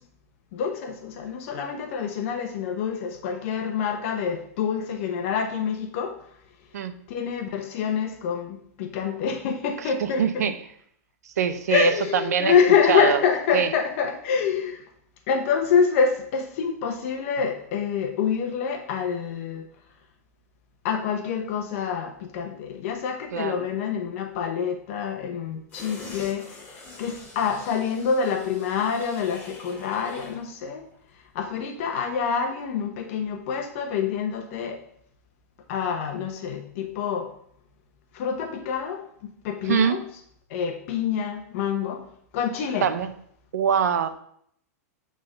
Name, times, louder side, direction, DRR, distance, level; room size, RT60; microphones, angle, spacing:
voice 1, 0.5-6.2 7.1-10.4 11.7-14.8 15.3-19.7 20.8-30.9 31.3-34.8 35.7-37.3 38.1-40.0 40.5-42.0 42.3-42.9, left 6 dB, 55° left, 4 dB, 1.0 m, -26 dB
voice 2, 10.0-10.5 11.2-12.5 12.9-13.2 13.5-13.7 23.3-23.7 39.7-40.0 42.8-43.1 43.5-44.1, right 7 dB, 85° right, 10 dB, 0.7 m, -23 dB
sound 1, 25.7-30.5 30.8-30.9, left 3 dB, 20° left, 3.1 m, -44 dB
8.7 x 3.8 x 5.2 m, 0.67 s
hypercardioid pair, 135°, 9 cm